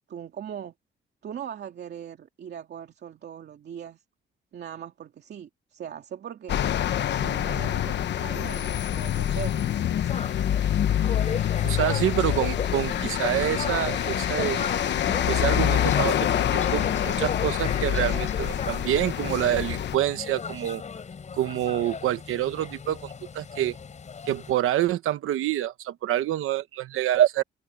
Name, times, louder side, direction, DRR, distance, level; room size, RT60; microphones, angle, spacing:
voice 1, 0.1-0.7 1.2-4.0 4.5-6.6 7.1-9.7, right 9 dB, 55° right, 2.6 m, -40 dB
sound 1, 6.5-20.0, left 10 dB, 60° left, 1.0 m, -26 dB
sound 2, 10.0-24.5, left 6 dB, 35° left, 6.6 m, -36 dB
voice 2, 11.6-14.7 15.3-20.8 21.3-23.8 24.2-27.4, right 12 dB, 90° right, 1.1 m, -27 dB
open air
cardioid pair, 150°, 21 cm